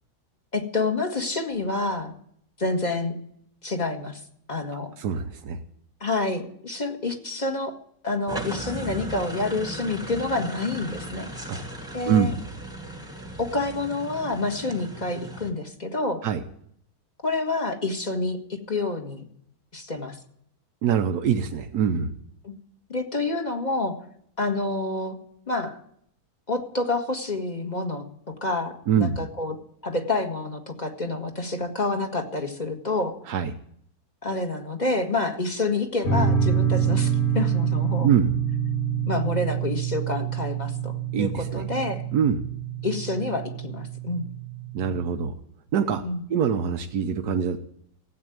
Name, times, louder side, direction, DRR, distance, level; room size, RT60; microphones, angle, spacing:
voice 1, 0.5-2.1 2.6-3.1 3.6-4.2 4.5-4.9 6.0-7.7 8.0-11.5 11.9-12.3 13.4-16.2 17.2-19.3 19.7-20.2 22.4-22.5 22.9-24.0 24.4-25.2 25.5-25.8 26.5-28.0 28.4-29.6 29.8-33.2 34.2-38.1 39.1-42.0 42.8-44.3 46.0-46.2, left 2 dB, 30° left, 4 dB, 1.7 m, -28 dB
voice 2, 5.0-5.6 11.5-11.6 12.1-12.3 16.2-16.4 20.8-22.1 28.9-29.2 33.3-33.5 38.0-38.3 41.1-41.6 42.1-42.4 44.7-45.3 45.7-46.0 46.3-47.6, right 7 dB, 90° right, 6 dB, 1.4 m, -24 dB
sound 1, 8.3-15.5, right 1 dB, 5° right, 1.4 m, -37 dB
sound 2, 36.0-45.0, right 7 dB, 45° left, 3.0 m, -26 dB
15.5 x 8.6 x 9.1 m, 0.68 s
omnidirectional pair, 1.6 m